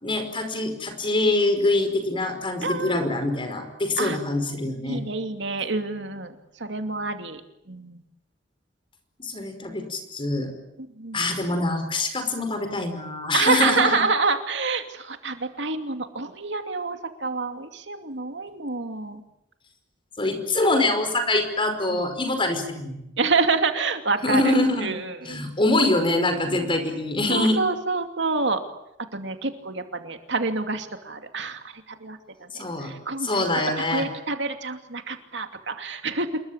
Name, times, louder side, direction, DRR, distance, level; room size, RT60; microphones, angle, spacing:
voice 1, 0.0-5.0 9.2-10.5 11.1-14.0 20.2-23.0 24.2-24.9 25.3-27.6 32.5-32.9 33.2-34.0, left 2 dB, 30° left, 7 dB, 5.2 m, -24 dB
voice 2, 2.6-3.1 4.0-4.2 4.8-7.4 7.7-8.0 10.8-11.2 13.3-19.2 21.7-22.0 23.2-24.5 24.8-25.4 27.3-28.6 29.1-33.5 33.9-36.4, right 4 dB, 70° right, 6 dB, 2.6 m, -27 dB
27.5 x 22.5 x 8.9 m, 0.83 s
head